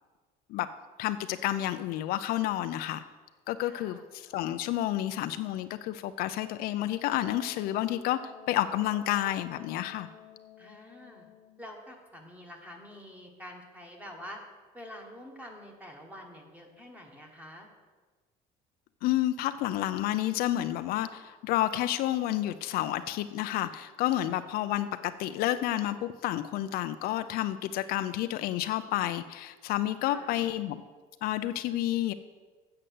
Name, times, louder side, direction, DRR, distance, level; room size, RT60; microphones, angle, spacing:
voice 1, 1.0-3.0 3.5-10.1 19.0-30.8 31.2-32.1, left 13 dB, 60° left, 10 dB, 0.5 m, -30 dB
voice 2, 3.6-4.0 10.6-11.3 11.6-14.4 14.7-17.7 30.1-30.5, left 1 dB, 10° right, 2 dB, 1.4 m, -47 dB
Wind instrument woodwind instrument, 6.9-11.7, left 9 dB, 40° left, 0.9 m, -52 dB
7.8 x 6.6 x 7.6 m, 1.4 s
cardioid pair, 155°, 17 cm